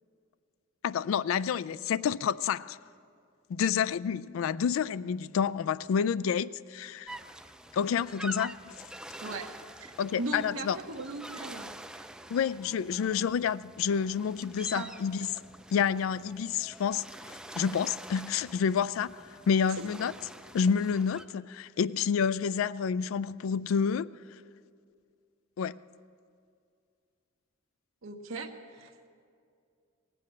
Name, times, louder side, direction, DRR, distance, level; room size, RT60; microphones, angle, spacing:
voice 1, 0.8-2.8 3.5-7.1 7.7-8.7 10.0-10.8 12.3-15.3 15.7-17.0 17.6-20.1 20.5-24.1 25.6-25.7, left 7 dB, 75° left, 0.3 m, -29 dB
sound 1, 7.1-21.2, right 1 dB, 5° right, 0.3 m, -46 dB
voice 2, 9.2-9.5 9.8-9.9 10.2-12.1 14.7-14.9 19.8-19.9 28.0-29.1, right 2 dB, 80° right, 0.9 m, -38 dB
19.0 x 7.7 x 7.5 m
head